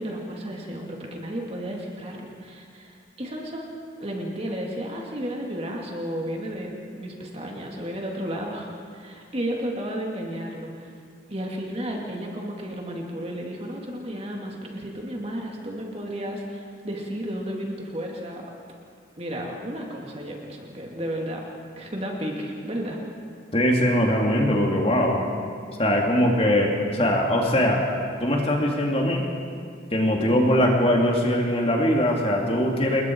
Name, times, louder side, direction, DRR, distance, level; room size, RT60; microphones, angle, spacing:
voice 1, 0.0-10.9 11.3-18.4 19.2-21.4 21.8-23.0, equal, 30° right, 0 dB, 2.6 m, -33 dB
voice 2, 23.5-25.2 25.8-27.9 28.2-29.3 29.9-33.0, equal, 30° left, 0 dB, 2.5 m, -21 dB
28.0 x 21.5 x 4.7 m, 2.2 s
head